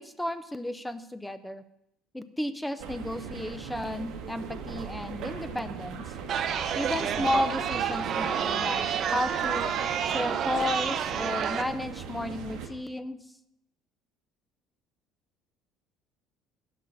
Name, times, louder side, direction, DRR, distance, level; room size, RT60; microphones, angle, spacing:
voice 1, 0.0-1.6 2.1-6.1 6.8-9.7 10.1-13.2, left 1 dB, 5° left, 13 dB, 0.5 m, -33 dB
sound 1, 2.8-12.7, right 6 dB, 60° right, 1.8 m, -39 dB
Chatter, 6.3-11.6, right 8 dB, 35° right, 0.8 m, -29 dB
11.5 x 5.5 x 8.6 m, 0.82 s
cardioid pair, 170°, 0 cm